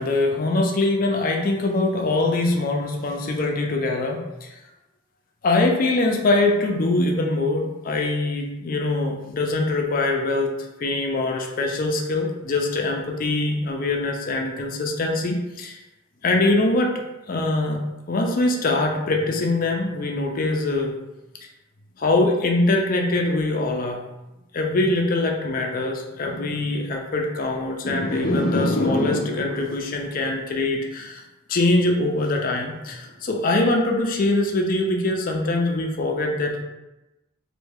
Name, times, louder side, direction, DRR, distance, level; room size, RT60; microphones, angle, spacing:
voice 1, 0.0-4.5 5.4-10.5 10.8-15.8 16.2-17.0 17.3-17.8 18.1-20.9 22.0-24.0 24.5-31.2 31.5-36.6, left 2 dB, 45° left, 1 dB, 0.5 m, -23 dB
3.2 x 2.6 x 3.5 m, 0.98 s
head